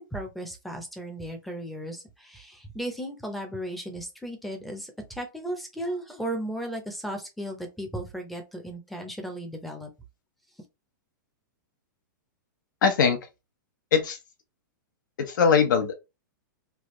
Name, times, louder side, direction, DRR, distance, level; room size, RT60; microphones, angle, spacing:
voice 1, 0.0-9.9, right 1 dB, ahead, 0.6 m, -35 dB
voice 2, 12.8-13.2 13.9-14.2 15.3-15.9, left 6 dB, 70° left, 0.9 m, -21 dB
3.3 x 2.4 x 3.0 m
hypercardioid pair, 155°, 11 cm